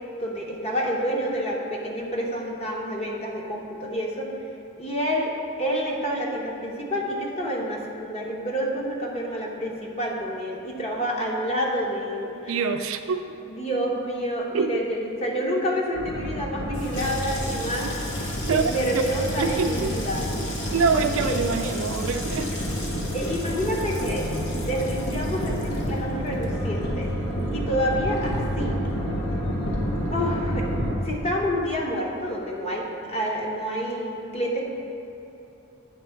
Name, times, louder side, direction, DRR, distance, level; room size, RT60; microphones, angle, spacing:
voice 1, 0.2-4.3 4.8-12.7 13.5-20.3 20.9-21.4 23.1-24.3 24.7-27.1 27.5-28.8 30.1-30.7 31.0-34.6, equal, 30° left, -1 dB, 0.9 m, -28 dB
voice 2, 12.5-13.4 14.5-14.8 18.5-18.7 19.4-20.0 20.7-22.5, right 5 dB, 85° right, 9 dB, 0.4 m, -25 dB
sound 1, 15.9-30.9, equal, 80° left, 1.4 m, -29 dB
Water tap faucet / Sink (filling or washing), 16.6-29.4 29.7-30.4 30.6-31.0, left 1 dB, 50° left, 1.2 m, -39 dB
8.5 x 3.6 x 5.7 m, 3.0 s
head